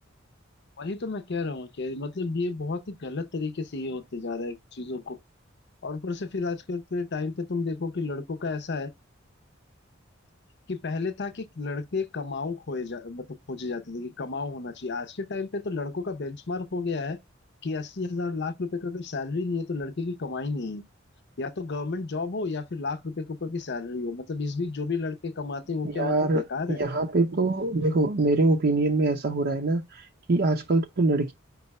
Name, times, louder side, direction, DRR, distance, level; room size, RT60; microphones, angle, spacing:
voice 1, 0.8-5.2 5.8-8.9 10.7-17.2 17.6-20.8 21.4-26.8, left 3 dB, 60° left, 0.7 m, -32 dB
voice 2, 25.8-31.3, right 2 dB, 55° right, 0.6 m, -24 dB
5.4 x 2.4 x 4.1 m
head